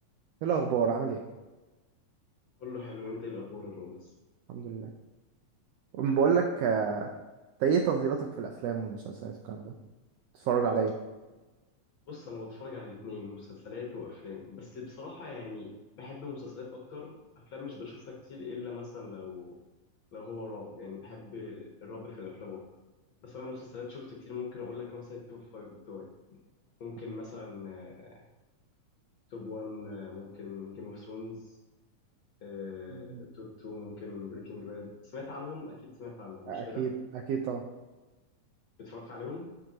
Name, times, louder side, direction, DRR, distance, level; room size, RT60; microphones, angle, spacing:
voice 1, 0.4-1.2 4.5-4.9 5.9-7.1 7.6-9.7 10.3-10.9 32.9-33.2 36.5-36.9 37.3-37.6, right 6 dB, 80° right, 4 dB, 1.4 m, -29 dB
voice 2, 2.6-4.1 11.3-11.4 12.1-19.6 20.1-22.6 23.2-26.4 26.8-28.2 29.3-31.6 32.4-36.9 38.8-39.5, left 4 dB, 55° left, -2 dB, 1.5 m, -42 dB
7.8 x 7.4 x 3.0 m, 1.1 s
omnidirectional pair, 3.5 m